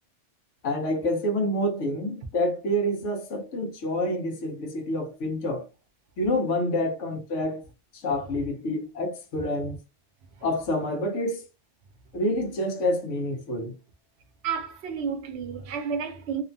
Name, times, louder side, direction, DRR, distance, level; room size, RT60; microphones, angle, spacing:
voice 1, 0.6-5.7 6.2-7.6 7.9-9.8 10.4-11.4 12.1-13.7, left 1 dB, 80° left, 1.1 m, -27 dB
voice 2, 14.4-16.4, right 6 dB, 65° right, 0.8 m, -31 dB
2.9 x 2.1 x 2.6 m
omnidirectional pair, 1.2 m